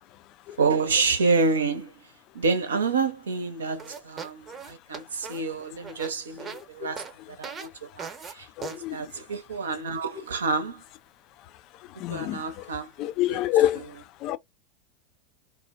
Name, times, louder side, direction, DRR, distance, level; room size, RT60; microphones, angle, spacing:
voice 1, 0.6-2.1 2.3-10.8 12.1-13.4 13.7-13.8, right 4 dB, 75° right, 0.6 m, -28 dB
sound 1, 3.8-6.6 7.0-7.1 7.4-7.7 8.0-8.3 8.6-8.8, right 6 dB, 25° right, 0.7 m, -39 dB
voice 2, 8.6-9.1 12.0-12.7 13.0-13.9 14.2-14.4, left 13 dB, 45° left, 0.3 m, -27 dB
2.5 x 2.1 x 2.4 m
figure-of-eight pair, 85°, 0 cm